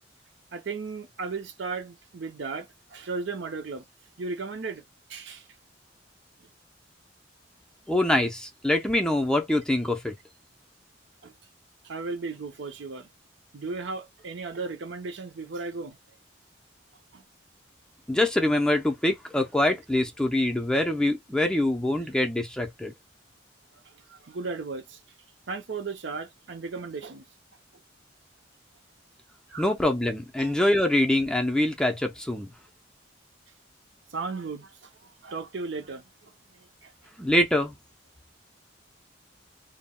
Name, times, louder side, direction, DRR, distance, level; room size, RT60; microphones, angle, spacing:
voice 1, 0.5-3.8 4.2-4.8 5.1-5.5 11.2-11.3 11.8-13.1 13.5-16.0 17.1-17.2 23.9-25.0 25.5-27.2 29.5-29.7 30.4-30.5 34.1-36.9, right 4 dB, 70° right, 0.6 m, -36 dB
voice 2, 7.9-10.1 18.1-22.9 29.6-32.5 37.2-37.8, left 1 dB, 5° left, 0.5 m, -24 dB
2.2 x 2.1 x 3.6 m
head